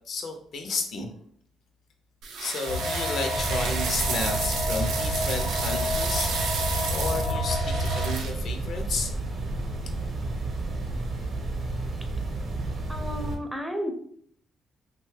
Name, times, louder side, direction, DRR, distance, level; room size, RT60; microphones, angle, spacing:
voice 1, 0.1-1.1 2.4-6.6 6.9-9.1, left 3 dB, 65° left, 5 dB, 0.5 m, -32 dB
sound 1, 2.2-8.3, right 5 dB, 85° right, 0.4 m, -32 dB
sound 2, 2.7-8.2, left 2 dB, 85° left, 0.9 m, -30 dB
sound 3, 3.4-13.4, right 2 dB, 50° right, 0.6 m, -31 dB
voice 2, 12.9-13.9, equal, 5° right, 4 dB, 0.4 m, -32 dB
2.7 x 2.2 x 3.1 m, 0.63 s
cardioid pair, 90°, 0 cm